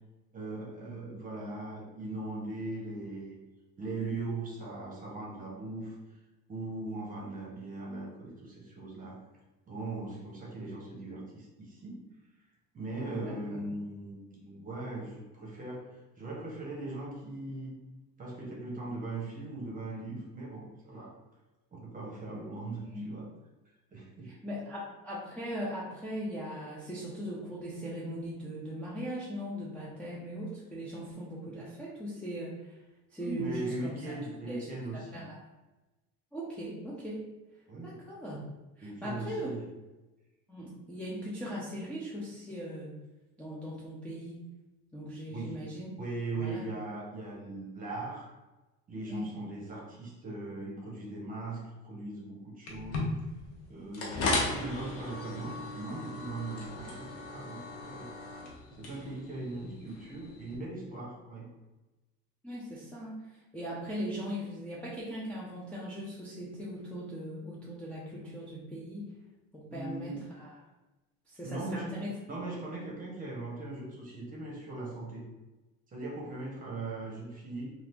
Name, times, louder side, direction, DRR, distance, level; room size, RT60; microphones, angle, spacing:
voice 1, 0.3-3.4 3.8-6.0 6.5-9.2 9.7-12.0 12.7-15.9 16.2-17.7 18.2-21.1 21.7-23.3 23.9-24.3 33.2-35.2 37.7-38.0 38.8-39.6 45.3-45.6 46.0-48.3 48.9-53.0 53.7-58.1 58.8-61.5 69.7-70.2 71.4-71.9 72.3-75.3 75.9-77.7, right 2 dB, 25° right, -3 dB, 1.0 m, -39 dB
voice 2, 13.1-13.7 22.8-23.1 24.2-32.8 33.1-34.1 34.5-34.7 34.9-35.4 36.3-37.2 37.8-38.4 38.8-39.5 40.5-43.0 43.4-44.4 44.9-45.9 46.3-46.6 49.0-49.3 62.4-69.1 69.5-70.6 71.3-72.1, equal, 5° left, -8 dB, 0.5 m, -39 dB
sound 1, 52.7-60.6, left 2 dB, 90° left, 0.8 m, -37 dB
2.7 x 2.5 x 3.4 m, 1.1 s
cardioid pair, 130°, 32 cm